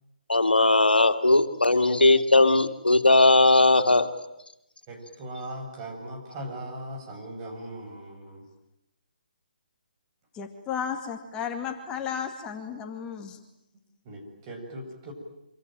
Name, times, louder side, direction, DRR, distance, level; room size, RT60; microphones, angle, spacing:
voice 1, 0.3-4.1, left 2 dB, 90° left, 7 dB, 2.4 m, -19 dB
voice 2, 4.9-8.5 14.0-15.1, right 1 dB, 30° right, 1 dB, 7.7 m, -39 dB
voice 3, 10.3-13.4, left 7 dB, 15° left, 5 dB, 2.2 m, -33 dB
26.0 x 25.0 x 9.2 m, 0.83 s
figure-of-eight pair, 145°, 5 cm